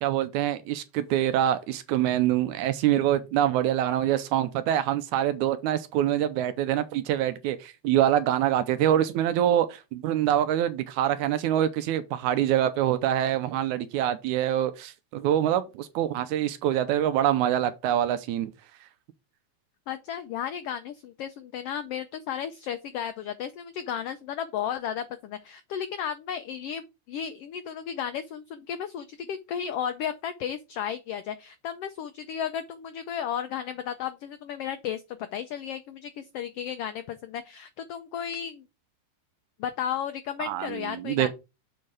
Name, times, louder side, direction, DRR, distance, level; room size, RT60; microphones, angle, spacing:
voice 1, 0.0-18.5 40.4-41.3, right 11 dB, 85° right, 2.1 m, -25 dB
voice 2, 19.9-38.6 39.6-41.3, left 9 dB, 85° left, 1.3 m, -34 dB
7.3 x 4.5 x 4.8 m
omnidirectional pair, 3.4 m